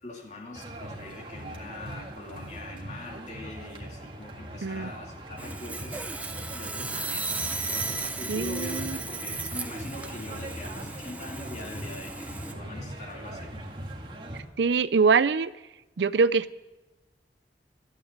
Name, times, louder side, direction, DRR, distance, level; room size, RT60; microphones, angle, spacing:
voice 1, 0.0-6.0 6.5-13.5, left 2 dB, 40° left, 0 dB, 2.5 m, -42 dB
sound 1, 0.5-14.4, right 1 dB, 30° right, 1.9 m, -40 dB
Sawing, 5.4-12.5, right 3 dB, 10° right, 0.8 m, -35 dB
voice 2, 8.3-9.0 14.6-15.5 16.0-16.6, right 5 dB, 80° right, 17 dB, 0.5 m, -24 dB
14.5 x 9.1 x 9.5 m, 1.1 s
head